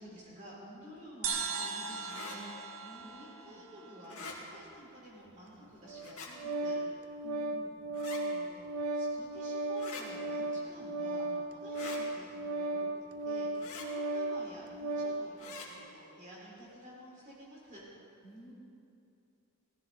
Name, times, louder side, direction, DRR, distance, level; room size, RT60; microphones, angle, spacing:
voice 1, 0.0-6.8 8.1-12.9 13.2-17.8, equal, 35° right, -5 dB, 4.2 m, -51 dB
sound 1, 1.2-4.7, right 5 dB, 70° right, 1.2 m, -39 dB
sound 2, 2.1-2.4 4.0-4.4 6.0-6.3 7.9-8.2 9.8-10.0 11.7-12.0 13.6-13.9 15.4-15.7, left 4 dB, 85° left, 2.2 m, -44 dB
voice 2, 2.8-3.6 7.2-7.7 18.2-18.5, right 1 dB, ahead, -10 dB, 3.2 m, -53 dB
Organ, 5.9-15.3, right 2 dB, 90° right, 0.8 m, -36 dB
17.0 x 15.0 x 4.1 m, 2.7 s
head